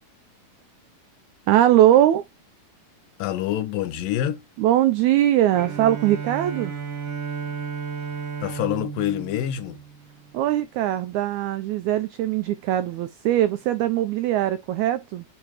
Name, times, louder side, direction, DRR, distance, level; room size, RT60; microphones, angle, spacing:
voice 1, 1.5-2.3 4.6-6.7 10.3-15.2, right 12 dB, 85° right, 1.6 m, -21 dB
voice 2, 3.2-4.4 8.4-9.8, left 12 dB, 85° left, 2.5 m, -26 dB
Bowed string instrument, 5.5-10.5, right 6 dB, 55° right, 2.3 m, -33 dB
10.0 x 3.6 x 2.9 m
omnidirectional pair, 4.0 m